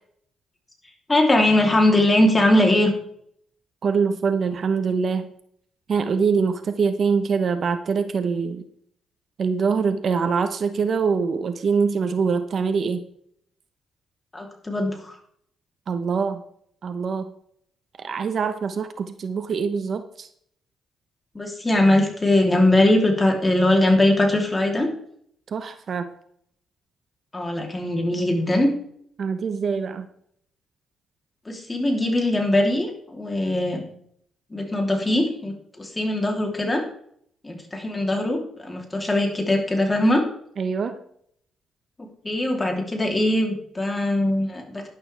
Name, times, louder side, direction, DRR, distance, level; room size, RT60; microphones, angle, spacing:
voice 1, 1.1-2.9 14.3-15.1 21.3-24.9 27.3-28.7 31.4-33.8 34.5-36.8 37.4-40.2 42.2-44.9, left 1 dB, 20° left, 1 dB, 3.2 m, -21 dB
voice 2, 3.8-5.3 5.9-8.7 9.4-13.1 15.9-16.4 16.8-17.3 18.0-20.3 25.5-26.1 29.2-30.1 40.6-41.0, right 5 dB, 50° right, 9 dB, 1.0 m, -24 dB
11.5 x 11.0 x 3.5 m, 0.67 s
cardioid pair, 90°, 0 cm